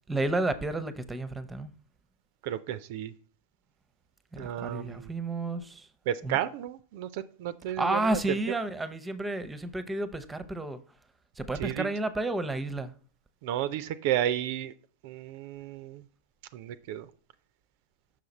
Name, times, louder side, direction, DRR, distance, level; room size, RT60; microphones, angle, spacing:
voice 1, 0.1-1.7 4.3-5.9 6.2-6.4 7.8-10.8 11.4-12.9, right 2 dB, 10° right, 0.7 m, -31 dB
voice 2, 2.4-3.1 4.4-5.1 6.1-8.2 11.6-11.9 13.4-14.7 15.0-16.0 16.5-17.1, right 11 dB, 55° right, 0.4 m, -32 dB
6.2 x 5.8 x 4.1 m
figure-of-eight pair, 95°, 0 cm